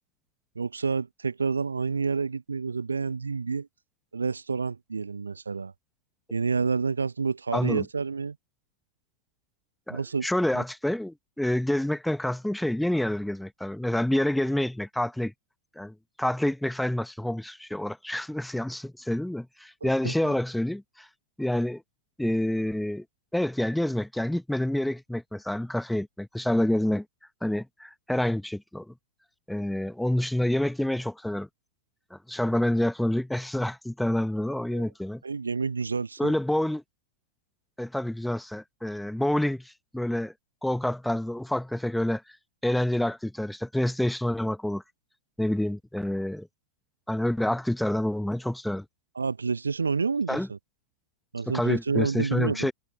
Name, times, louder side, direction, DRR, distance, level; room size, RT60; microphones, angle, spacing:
voice 1, 0.5-3.7 4.1-5.7 6.3-8.4 9.9-10.3 10.5-10.6 19.8-20.3 34.7-34.8 35.2-36.3 49.1-50.6 51.3-52.7, right 5 dB, 75° right, 1.4 m, -29 dB
voice 2, 7.5-7.8 9.9-15.3 15.8-21.1 21.4-21.8 22.2-23.0 23.3-27.0 27.4-28.9 29.5-31.5 32.1-35.2 36.2-36.8 37.8-40.3 40.6-42.2 42.6-44.8 45.4-46.5 47.1-48.8 50.3-50.5 51.5-52.7, left 1 dB, 5° left, 1.1 m, -28 dB
figure-of-eight pair, 90°, 0 cm